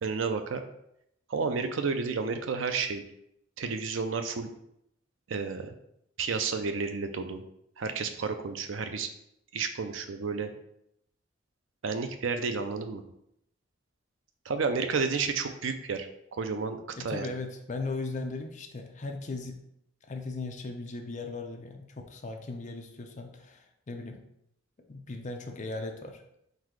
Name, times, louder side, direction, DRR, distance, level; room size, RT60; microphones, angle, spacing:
voice 1, 0.0-0.6 1.3-3.0 3.6-4.5 5.3-5.7 6.2-7.4 7.8-9.1 9.5-10.5 11.8-13.0 14.5-16.1 16.3-16.8 17.0-17.3, right 5 dB, 75° right, 7 dB, 0.5 m, -31 dB
voice 2, 17.0-19.6 20.1-24.2 24.9-26.2, left 3 dB, 40° left, 4 dB, 0.5 m, -37 dB
3.9 x 2.7 x 4.6 m, 0.76 s
head